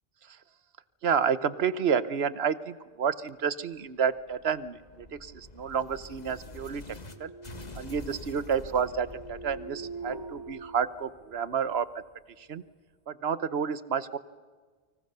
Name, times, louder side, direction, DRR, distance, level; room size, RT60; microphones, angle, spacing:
voice 1, 1.0-7.3 7.8-11.9 12.4-12.6 13.1-14.2, right 7 dB, 80° right, 15 dB, 1.2 m, -30 dB
sound 1, 3.7-7.2 7.4-12.1, left 2 dB, 45° left, 1.7 m, -47 dB
sound 2, 6.0-11.6, right 3 dB, 25° right, 1.6 m, -45 dB
30.0 x 25.0 x 6.8 m, 1.5 s
omnidirectional pair, 1.0 m